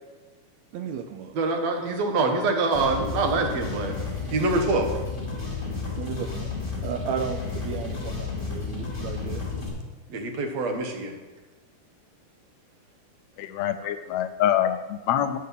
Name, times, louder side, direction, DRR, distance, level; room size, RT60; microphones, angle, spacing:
voice 1, 0.7-1.4 6.0-6.6 6.8-9.4, right 7 dB, 80° right, 7 dB, 1.7 m, -34 dB
voice 2, 1.3-4.0 4.3-4.9 10.1-11.2, right 3 dB, 65° right, 4 dB, 2.1 m, -25 dB
sound 1, 2.6-9.7, left 4 dB, 20° left, 2.4 m, -32 dB
voice 3, 13.4-15.4, left 10 dB, 80° left, 9 dB, 1.6 m, -25 dB
9.0 x 6.6 x 6.8 m, 1.3 s
omnidirectional pair, 3.6 m